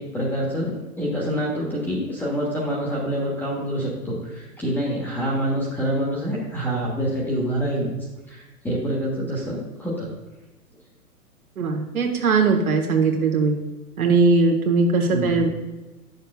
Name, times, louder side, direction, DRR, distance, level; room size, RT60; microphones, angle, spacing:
voice 1, 0.0-7.9 8.3-10.1 15.1-15.3, equal, 5° left, -4 dB, 1.1 m, -26 dB
voice 2, 11.6-13.5 14.0-15.6, right 4 dB, 65° right, 1 dB, 1.4 m, -20 dB
10.0 x 6.5 x 2.3 m, 1.1 s
figure-of-eight pair, 115°, 46 cm